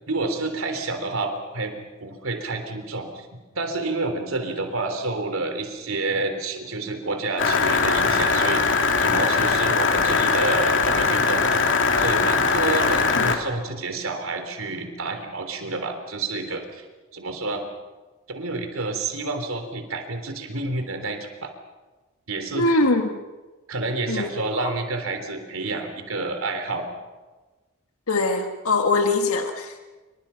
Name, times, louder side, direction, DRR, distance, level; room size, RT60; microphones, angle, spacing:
voice 1, 0.1-1.7 2.0-3.3 3.6-11.4 12.0-16.8 17.1-17.6 18.3-21.5 22.3-22.8 23.7-26.8, right 3 dB, 65° right, 6 dB, 3.5 m, -29 dB
sound 1, 7.4-13.4, left 4 dB, 55° left, 2.6 m, -21 dB
voice 2, 22.5-23.1 24.1-24.3 24.6-24.7 28.1-29.8, left 2 dB, 80° left, 5 dB, 1.7 m, -22 dB
28.0 x 25.5 x 5.8 m, 1.2 s
head